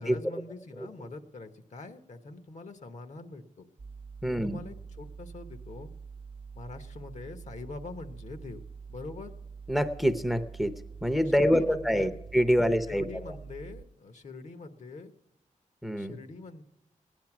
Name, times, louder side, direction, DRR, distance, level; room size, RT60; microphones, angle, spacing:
voice 1, 0.0-3.6 4.3-5.9 6.5-8.6 8.9-9.3 11.3-12.2 12.5-15.1 16.0-16.6, left 3 dB, 60° left, 9 dB, 1.1 m, -43 dB
sound 1, 3.8-13.8, right 5 dB, 40° right, 0.7 m, -46 dB
voice 2, 4.2-4.6 9.7-13.1 15.8-16.2, equal, ahead, 10 dB, 0.7 m, -26 dB
16.0 x 10.5 x 6.0 m, 0.93 s
wide cardioid pair, 110°, 13 cm